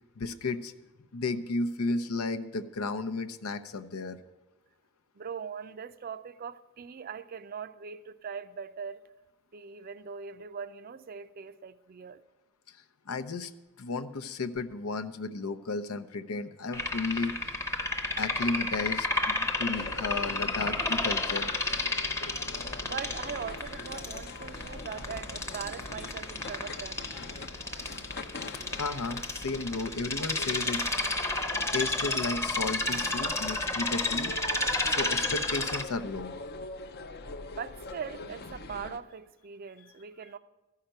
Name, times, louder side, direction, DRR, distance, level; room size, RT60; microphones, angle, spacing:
voice 1, 0.2-0.7 1.1-4.2 13.1-13.5 13.8-17.6 18.2-21.5 28.7-30.8 31.7-34.3 34.8-36.3, left 3 dB, 90° left, 0.7 m, -33 dB
voice 2, 5.2-9.0 9.5-12.2 22.8-27.1 37.5-40.4, right 6 dB, 45° right, 0.4 m, -41 dB
sound 1, 16.7-35.8, left 2 dB, 15° left, 0.8 m, -32 dB
sound 2, 19.7-39.0, left 3 dB, 50° left, 0.6 m, -44 dB
14.0 x 5.8 x 8.9 m
head